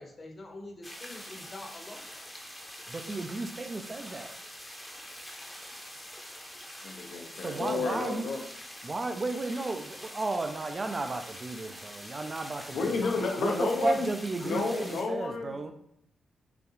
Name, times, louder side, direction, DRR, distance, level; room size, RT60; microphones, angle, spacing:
voice 1, 0.0-2.1 13.0-13.9 14.4-15.0, left 2 dB, 45° left, 0.9 m, -45 dB
sound 1, 0.8-15.0, equal, 10° left, 0.7 m, -45 dB
voice 2, 2.9-4.4 7.4-8.3 8.8-13.1 13.4-15.7, right 3 dB, 35° right, 0.5 m, -34 dB
voice 3, 6.8-8.4 12.7-14.1 14.4-15.7, left 3 dB, 80° left, 0.7 m, -31 dB
5.0 x 2.4 x 3.1 m
cardioid pair, 65°, 0 cm